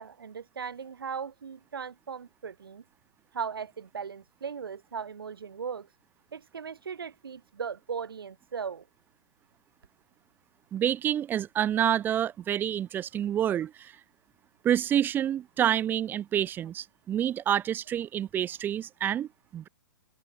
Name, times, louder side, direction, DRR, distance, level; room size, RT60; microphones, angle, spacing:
voice 1, 0.0-2.8 3.3-5.9 6.3-8.8, right 6 dB, 85° right, 3.2 m, -38 dB
voice 2, 10.7-13.9 14.6-19.7, right 10 dB, 15° right, 0.6 m, -28 dB
open air
hypercardioid pair, 140°, 12 cm